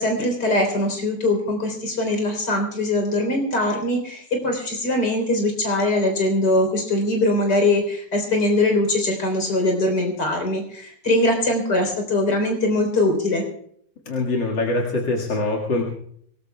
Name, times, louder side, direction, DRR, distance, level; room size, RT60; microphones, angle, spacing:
voice 1, 0.0-13.4, left 1 dB, 65° left, 2 dB, 4.4 m, -22 dB
voice 2, 14.1-15.8, left 2 dB, 90° left, -2 dB, 2.7 m, -23 dB
25.0 x 19.0 x 2.3 m, 0.65 s
omnidirectional pair, 2.0 m